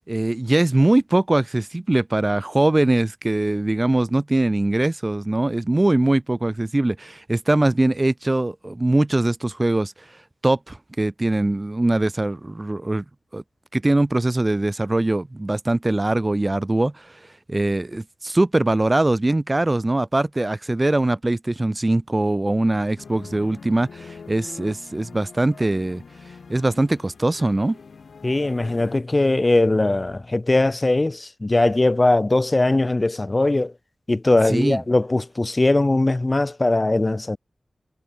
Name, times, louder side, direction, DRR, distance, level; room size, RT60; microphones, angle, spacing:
voice 1, 0.1-9.9 10.4-13.0 13.3-13.4 13.7-17.2 17.5-26.0 26.5-27.8 34.4-34.8, right 2 dB, 25° right, 1.2 m, -21 dB
sound 1, 23.0-29.0, left 5 dB, 85° left, 4.3 m, -43 dB
voice 2, 28.2-33.7 34.1-37.4, left 2 dB, 30° left, 2.1 m, -20 dB
wide cardioid pair, 70°, 0 cm